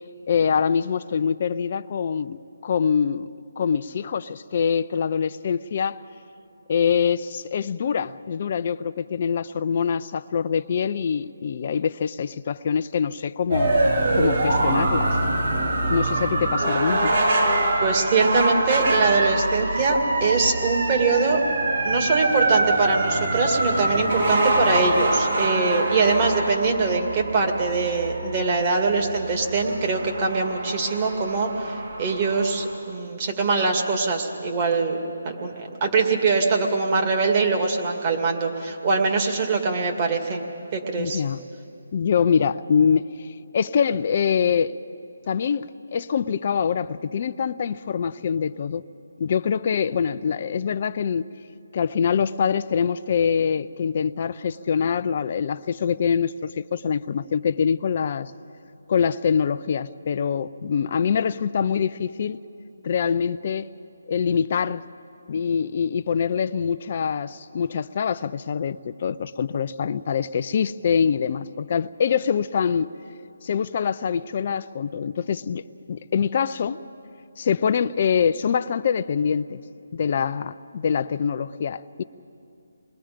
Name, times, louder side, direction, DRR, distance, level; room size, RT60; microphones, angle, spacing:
voice 1, 0.3-3.3 3.6-6.0 6.7-13.8 14.1-15.2 15.9-17.2 41.0-41.4 41.9-43.1 43.5-44.7 45.3-45.7 45.9-48.8 49.2-51.3 51.7-58.3 58.9-62.4 62.8-63.7 64.1-64.8 65.3-72.9 73.4-75.6 75.9-76.8 77.4-79.6 79.9-82.0, left 7 dB, 40° left, 0.5 m, -24 dB
sound 1, 13.5-32.7, right 2 dB, 45° right, 7.3 m, -24 dB
voice 2, 17.8-21.4 21.8-35.0 35.3-40.4 40.7-41.2, right 4 dB, 30° right, 2.1 m, -23 dB
28.0 x 20.5 x 5.1 m
hypercardioid pair, 165°, 0 cm